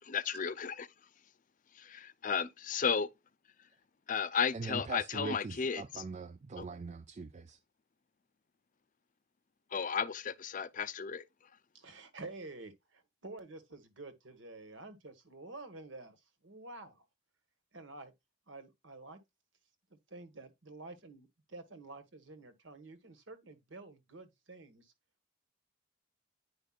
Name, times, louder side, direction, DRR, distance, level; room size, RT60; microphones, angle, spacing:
voice 1, 0.1-0.7 1.8-3.1 4.1-6.0 6.6-6.7 9.7-11.2, left 6 dB, 40° left, 0.5 m, -34 dB
voice 2, 4.5-7.6, right 4 dB, 35° right, 0.4 m, -42 dB
voice 3, 11.7-17.1 17.7-18.1 18.5-19.2 19.9-24.9, right 2 dB, 65° right, 1.4 m, -49 dB
10.0 x 5.0 x 2.4 m
head